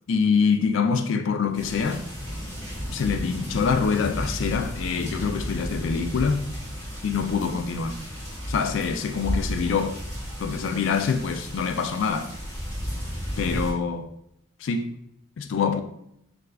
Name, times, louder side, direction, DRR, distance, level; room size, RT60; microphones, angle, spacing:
voice 1, 0.1-2.0 2.9-6.4 7.0-8.0 8.5-10.0 10.4-12.3 13.4-14.1 14.6-14.9 15.4-15.8, left 5 dB, 55° left, 0.3 m, -25 dB
sound 1, 1.5-13.7, equal, 15° left, 1.2 m, -33 dB
6.5 x 2.4 x 2.3 m
head